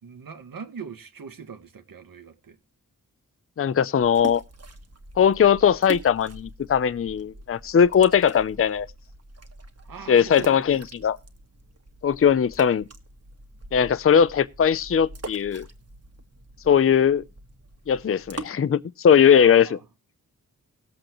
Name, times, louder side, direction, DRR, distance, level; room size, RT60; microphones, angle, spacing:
voice 1, 0.0-2.6 9.9-10.8 19.3-19.8, right 6 dB, 80° right, 1.7 m, -41 dB
voice 2, 3.6-4.4 5.2-8.9 10.1-11.2 12.0-12.8 13.7-15.7 16.7-17.2 17.9-19.7, left 8 dB, 40° left, 0.5 m, -19 dB
sound 1, 4.0-18.4, right 3 dB, 45° right, 1.8 m, -42 dB
19.0 x 7.7 x 3.0 m
wide cardioid pair, 130°, 34 cm